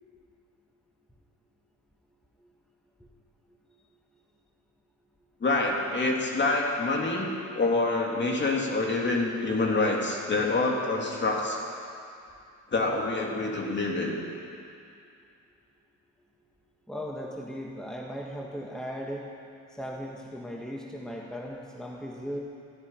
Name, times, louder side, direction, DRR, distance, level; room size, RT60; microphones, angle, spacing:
voice 1, 5.4-11.6 12.7-14.2, left 2 dB, 35° left, -1 dB, 2.8 m, -26 dB
voice 2, 16.9-19.2 19.8-22.4, equal, ahead, -2 dB, 1.7 m, -37 dB
14.0 x 9.9 x 9.0 m, 2.4 s
cardioid pair, 90°, 30 cm